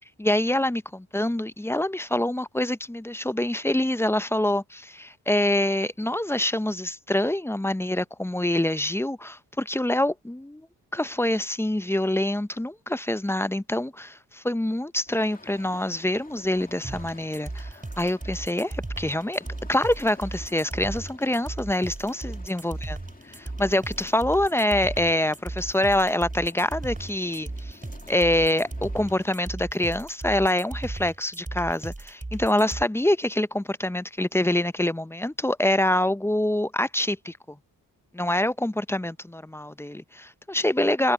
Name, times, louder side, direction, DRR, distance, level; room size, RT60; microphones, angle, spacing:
voice 1, 0.2-10.7 10.9-23.0 23.6-27.8 28.1-37.6 38.1-41.1, left 1 dB, 5° left, 0.6 m, -25 dB
sound 1, 15.1-29.5, left 2 dB, 20° left, 2.4 m, -51 dB
sound 2, 16.8-32.8, right 2 dB, 20° right, 4.2 m, -36 dB
cardioid pair, 60°, 39 cm